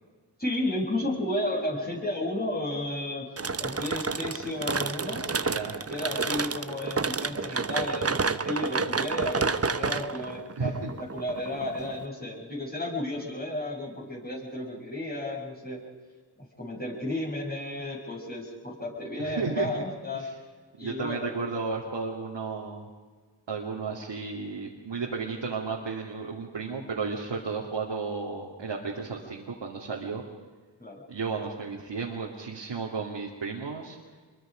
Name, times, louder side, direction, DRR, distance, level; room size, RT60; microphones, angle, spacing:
voice 1, 0.4-3.3 3.6-5.2 5.9-10.8 11.1-15.8 16.4-20.3 20.8-21.3 30.8-31.0, left 1 dB, 20° left, -3 dB, 7.4 m, -33 dB
sound 1, 3.4-12.0, right 4 dB, 35° right, 0.9 m, -30 dB
voice 2, 5.2-5.8 6.0-6.1 10.6-10.9 19.2-19.7 20.1-20.3 20.8-22.9 23.5-30.2 31.1-34.0, right 4 dB, 85° right, -2 dB, 2.7 m, -33 dB
26.5 x 23.0 x 5.2 m, 1.4 s
cardioid pair, 55°, 43 cm